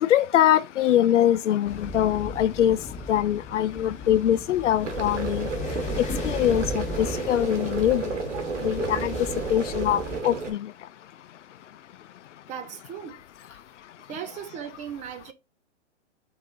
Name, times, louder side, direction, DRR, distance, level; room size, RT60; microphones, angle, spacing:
voice 1, 0.0-2.8 3.1-5.5 6.0-8.2 8.6-9.1 9.5-10.7, left 11 dB, 85° left, 0.5 m, -23 dB
sound 1, 1.6-10.2, left 2 dB, 20° left, 1.1 m, -36 dB
sound 2, 4.8-10.5, right 4 dB, 85° right, 1.4 m, -32 dB
voice 2, 12.5-13.2 13.5-13.6 14.1-15.3, right 8 dB, 20° right, 0.6 m, -37 dB
4.7 x 2.8 x 3.8 m
hypercardioid pair, 130°, 36 cm